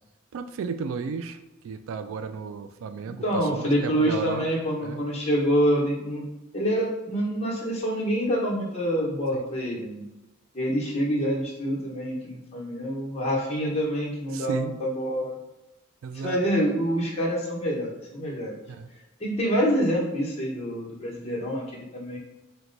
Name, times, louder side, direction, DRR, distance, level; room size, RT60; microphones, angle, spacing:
voice 1, 0.3-4.4 4.8-5.0 9.3-9.4 14.3-14.7 16.0-16.4 18.7-18.9, right 5 dB, 75° right, 11 dB, 0.3 m, -34 dB
voice 2, 3.2-6.2 6.5-10.0 10.5-15.3 16.1-18.6 19.2-22.2, equal, 30° left, -4 dB, 1.0 m, -26 dB
4.5 x 2.2 x 3.9 m, 1.0 s
head